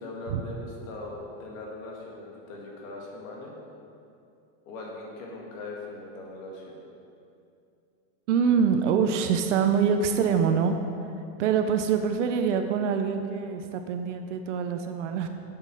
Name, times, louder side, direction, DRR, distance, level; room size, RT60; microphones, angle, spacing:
voice 1, 0.0-3.5 4.7-6.8, left 2 dB, 55° left, -2 dB, 2.3 m, -40 dB
voice 2, 8.3-10.8 11.4-15.3, right 6 dB, 50° right, 7 dB, 0.6 m, -25 dB
8.7 x 7.7 x 6.2 m, 2.6 s
supercardioid pair, 180°, 50 cm